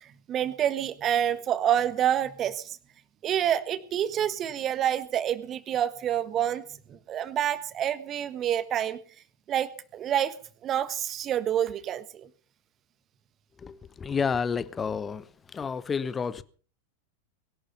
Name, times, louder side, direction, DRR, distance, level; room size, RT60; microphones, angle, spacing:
voice 1, 0.0-2.8 3.2-6.6 6.9-9.0 9.5-10.3 10.6-12.3, right 10 dB, 30° right, 1.5 m, -28 dB
voice 2, 13.6-15.3 15.5-16.4, left 6 dB, 20° left, 1.0 m, -30 dB
21.5 x 12.0 x 5.6 m
figure-of-eight pair, 90°, 0 cm